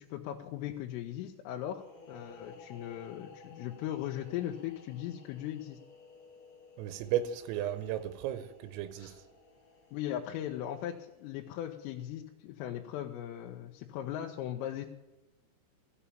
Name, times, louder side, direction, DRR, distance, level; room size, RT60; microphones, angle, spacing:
voice 1, 0.0-5.8 9.9-14.9, left 11 dB, 80° left, 3.4 m, -38 dB
sound 1, 1.7-11.2, left 3 dB, 60° left, 1.9 m, -56 dB
voice 2, 6.8-9.1, right 11 dB, 90° right, 3.5 m, -34 dB
sound 2, 6.9-7.1 7.4-8.1 8.9-9.2, right 1 dB, 25° left, 2.8 m, -57 dB
15.5 x 7.0 x 8.7 m
omnidirectional pair, 5.9 m